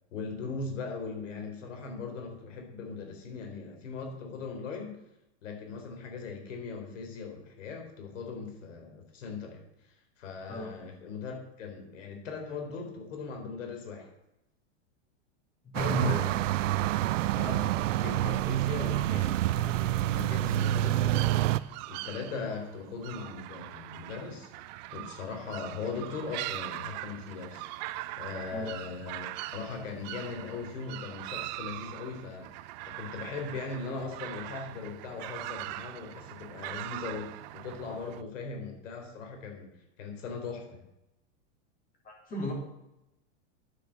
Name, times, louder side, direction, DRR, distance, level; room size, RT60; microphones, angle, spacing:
voice 1, 0.1-5.0 5.4-14.1 17.3-27.9 28.2-29.3 29.5-39.7 40.0-40.8, left 4 dB, 90° left, 3 dB, 4.2 m, -39 dB
voice 2, 15.6-16.3 28.5-28.7 42.0-42.5, right 1 dB, 25° left, -2 dB, 4.3 m, -32 dB
sound 1, 15.7-21.6, right 14 dB, 85° right, 0.6 m, -27 dB
sound 2, 20.6-38.2, right 17 dB, 40° right, 0.4 m, -42 dB
9.8 x 8.1 x 7.5 m, 0.89 s
supercardioid pair, 150°, 37 cm